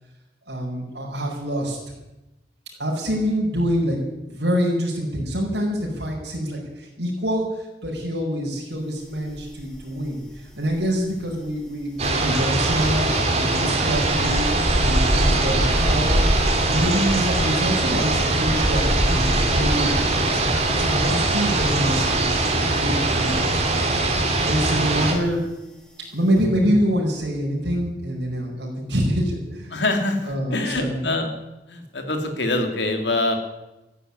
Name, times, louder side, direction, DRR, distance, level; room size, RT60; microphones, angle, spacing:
voice 1, 0.5-1.8 2.8-4.0 4.3-10.2 10.5-14.4 14.8-23.5 23.8-25.4 26.1-29.7 30.2-31.1, equal, 75° right, -3 dB, 5.2 m, -26 dB
sound 1, 9.3-10.1 10.3-23.9 24.1-24.4, equal, 5° left, 2.2 m, -27 dB
sound 2, 12.0-25.1, right 2 dB, 40° right, 2.9 m, -22 dB
voice 2, 29.7-31.3 31.7-33.4, left 2 dB, 85° left, 4 dB, 2.8 m, -24 dB
14.0 x 10.5 x 9.8 m, 0.98 s
head